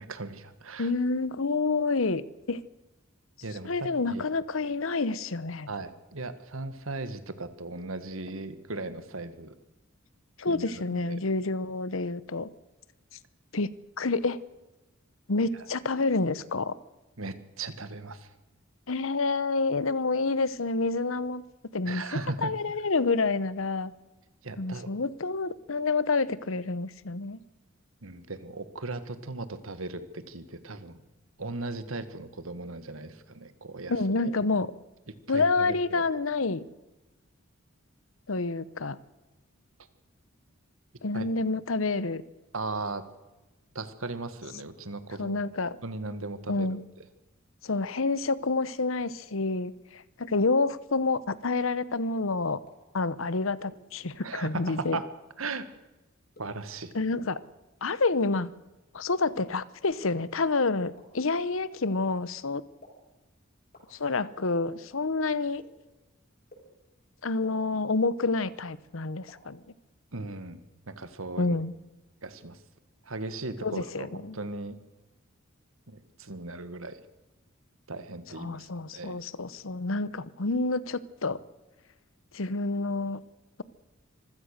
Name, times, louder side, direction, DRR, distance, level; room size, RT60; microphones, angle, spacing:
voice 1, 0.0-0.9 3.4-4.2 5.7-9.5 10.5-11.2 15.5-15.6 17.2-18.3 21.9-22.5 24.4-24.9 28.0-31.0 31.4-34.4 35.3-36.0 41.1-41.3 42.5-43.0 43.7-45.5 45.8-46.8 54.2-55.1 55.4-55.7 56.4-56.9 70.1-70.6 70.9-71.5 72.2-72.6 73.0-74.8 75.9-77.0 77.9-79.2, right 3 dB, 90° right, 12 dB, 1.7 m, -37 dB
voice 2, 0.8-2.2 2.5-2.6 3.6-5.7 10.4-12.5 13.5-14.4 15.3-16.7 18.9-21.4 21.7-22.0 22.4-23.9 24.6-27.4 33.9-34.7 35.3-36.6 38.3-39.0 41.0-42.2 45.2-45.8 46.5-46.8 47.6-52.6 52.9-55.0 56.9-57.4 57.8-58.5 58.9-62.6 63.9-65.6 67.2-69.6 71.4-71.7 73.6-74.4 78.3-81.4 82.3-83.2, left 3 dB, 80° left, 18 dB, 0.9 m, -28 dB
sound 1, 52.7-52.8 53.6-53.7 54.5-54.6 55.4-55.5 56.4-56.5 57.3-57.4 58.2-58.3 59.1-59.2 60.0-60.1 61.0-61.1 61.9-62.0 62.8-62.9 63.7-63.8 64.7-64.8 65.6-65.7 66.5-66.6 67.4-67.5 68.4-68.5 69.3-69.4, left 2 dB, 45° left, 7.4 m, -51 dB
25.0 x 16.0 x 6.7 m, 1.1 s
head